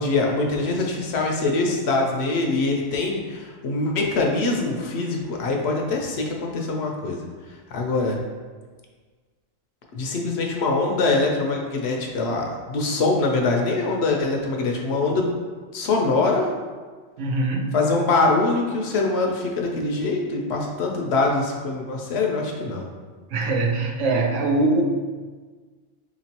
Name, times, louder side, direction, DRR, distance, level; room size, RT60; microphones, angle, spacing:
voice 1, 0.0-7.2 7.7-8.2 9.9-15.4 15.7-16.5 17.7-22.9, left 3 dB, 65° left, 0 dB, 0.8 m, -23 dB
voice 2, 17.2-17.7 23.3-24.8, right 2 dB, 80° right, 2 dB, 0.9 m, -22 dB
4.4 x 3.0 x 2.8 m, 1.4 s
omnidirectional pair, 1.2 m